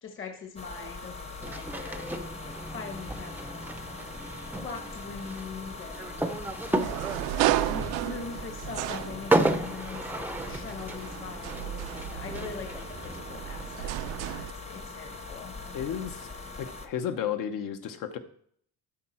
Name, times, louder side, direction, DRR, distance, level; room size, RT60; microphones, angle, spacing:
voice 1, 0.0-4.2 4.6-6.3 6.7-7.0 7.4-15.5, left 5 dB, 35° left, 3 dB, 1.2 m, -42 dB
sound 1, 0.6-16.9, left 3 dB, 15° left, 0.9 m, -42 dB
sound 2, 1.4-14.3, right 2 dB, 5° right, 0.6 m, -34 dB
sound 3, 6.8-9.7 10.3-14.5, right 14 dB, 80° right, 0.5 m, -33 dB
voice 2, 15.7-16.3 16.5-18.2, left 9 dB, 60° left, 9 dB, 1.0 m, -33 dB
13.0 x 4.7 x 4.4 m, 0.63 s
cardioid pair, 120°, 36 cm